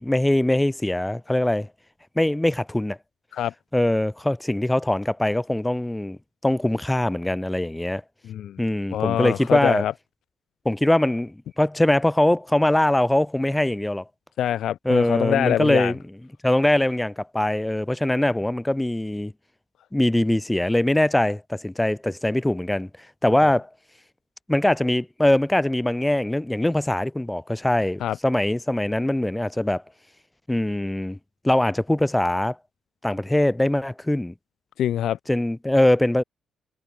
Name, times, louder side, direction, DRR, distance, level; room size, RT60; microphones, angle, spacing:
voice 1, 0.0-1.7 2.2-3.0 3.7-6.2 6.4-8.0 8.6-9.8 10.7-14.0 14.9-16.0 16.4-19.3 19.9-22.9 23.2-23.7 24.5-29.8 30.5-31.2 31.4-32.6 33.0-34.3 35.3-36.2, left 1 dB, 10° left, 3.6 m, -22 dB
voice 2, 8.2-8.6 8.9-9.9 14.4-15.9 23.4-23.5 28.0-28.2 34.8-35.2, left 11 dB, 70° left, 7.6 m, -24 dB
cardioid pair, 90°, 0 cm